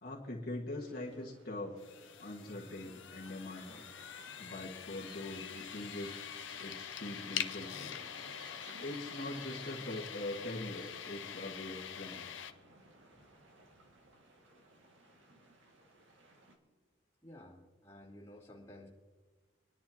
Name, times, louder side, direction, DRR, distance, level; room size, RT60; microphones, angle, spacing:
voice 1, 0.0-1.8 2.2-3.9 4.4-6.1 6.6-8.0 8.8-12.3, left 1 dB, 50° left, -3 dB, 1.7 m, -42 dB
sound 1, 0.8-16.6, right 1 dB, 75° right, 2.0 m, -60 dB
sound 2, 1.8-12.5, left 9 dB, 75° left, 0.6 m, -44 dB
sound 3, 4.9-11.0, right 1 dB, 25° right, 1.5 m, -59 dB
voice 2, 17.2-18.9, left 1 dB, 15° left, -6 dB, 2.9 m, -53 dB
25.0 x 11.0 x 2.9 m, 1.3 s
head